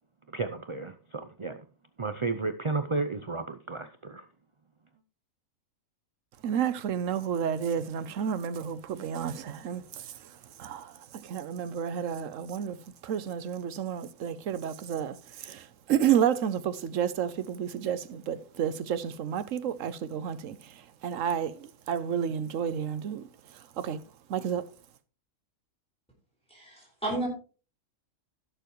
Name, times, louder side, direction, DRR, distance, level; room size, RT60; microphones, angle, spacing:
voice 1, 0.3-1.7 2.0-4.3, right 3 dB, 45° right, 0.4 m, -33 dB
voice 2, 6.4-10.3 10.6-12.8 13.0-23.3 23.8-24.0 24.3-24.6, right 8 dB, 70° right, 1.1 m, -31 dB
voice 3, 26.5-27.3, right 2 dB, 5° left, 4.3 m, -32 dB
17.0 x 6.9 x 3.1 m
omnidirectional pair, 1.4 m